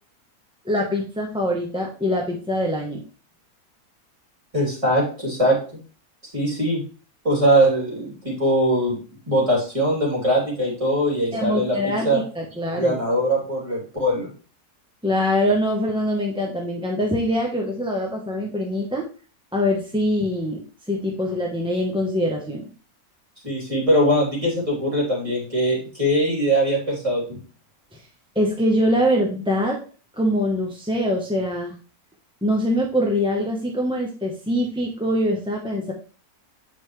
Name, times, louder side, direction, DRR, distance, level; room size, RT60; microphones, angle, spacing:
voice 1, 0.6-3.0 11.3-13.0 15.0-19.0 19.5-20.6 20.9-22.6 28.3-29.8 30.2-31.7 32.4-35.9, equal, 5° right, -1 dB, 0.8 m, -23 dB
voice 2, 4.5-5.6 6.3-6.8 7.2-9.0 9.3-12.2 12.7-14.3 23.4-27.4, right 1 dB, 20° right, -4 dB, 3.4 m, -21 dB
8.2 x 5.3 x 3.2 m, 0.38 s
omnidirectional pair, 1.6 m